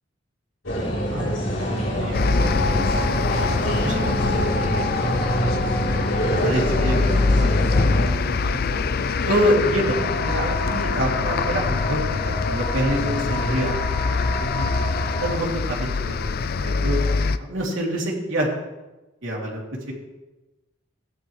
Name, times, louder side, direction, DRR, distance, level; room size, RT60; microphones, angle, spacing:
sound 1, 0.6-8.1, equal, 85° left, 3.4 m, -24 dB
voice 1, 0.8-3.2 3.8-6.0 6.4-8.1 8.5-8.8 9.3-14.7 15.2-17.0 17.4-18.5 19.2-19.9, equal, 85° right, -3 dB, 2.9 m, -28 dB
sound 2, 2.1-17.4, left 4 dB, 50° left, 0.5 m, -24 dB
sound 3, 9.9-15.4, equal, 30° left, 1.1 m, -31 dB
15.5 x 10.0 x 3.2 m, 1.1 s
head